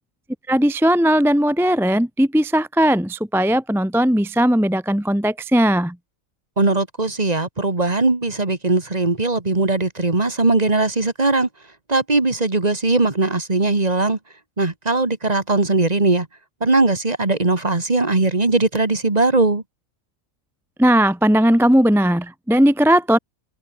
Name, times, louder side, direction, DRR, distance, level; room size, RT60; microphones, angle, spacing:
voice 1, 0.5-6.0 20.8-23.2, equal, 5° right, 0.6 m, -17 dB
voice 2, 6.6-11.5 11.9-14.2 14.6-16.3 16.6-19.6, right 2 dB, 30° right, 2.1 m, -19 dB
omnidirectional pair, 1.4 m